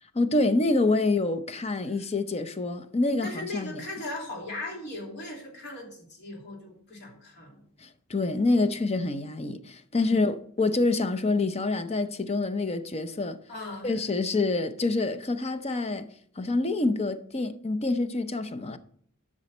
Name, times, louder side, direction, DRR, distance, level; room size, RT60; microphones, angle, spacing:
voice 1, 0.1-3.8 7.8-13.4 13.8-18.8, left 2 dB, 30° left, 0.6 m, -27 dB
voice 2, 3.2-7.6 10.0-10.2 13.5-14.0, left 2 dB, 50° left, 2.7 m, -38 dB
12.0 x 6.2 x 4.2 m
head